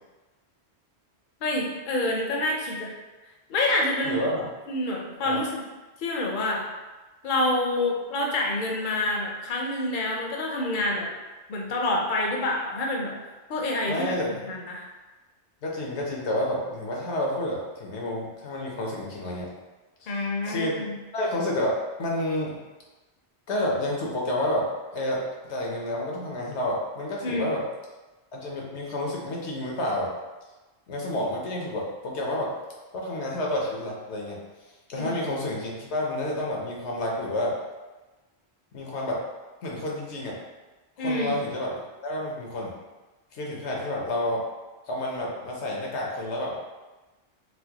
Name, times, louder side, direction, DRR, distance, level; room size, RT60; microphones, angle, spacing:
voice 1, 1.4-2.9 3.5-4.2 4.7-5.6 6.0-6.6 7.2-11.1 11.5-13.2 13.5-14.2 14.5-14.8 20.1-20.9 27.2-27.5 35.0-35.2 41.0-41.4, left 2 dB, 55° left, -1 dB, 0.7 m, -27 dB
voice 2, 4.0-4.4 5.3-5.4 13.9-14.4 15.6-19.5 20.0-20.1 20.4-20.8 21.1-21.7 22.0-22.6 23.5-27.6 28.3-30.1 30.9-32.5 32.9-34.4 34.9-37.6 38.7-39.2 39.6-40.4 41.0-42.7 43.3-44.4 44.9-46.6, left 1 dB, 85° left, -2 dB, 1.0 m, -29 dB
4.3 x 2.0 x 2.8 m, 1.2 s
omnidirectional pair, 1.1 m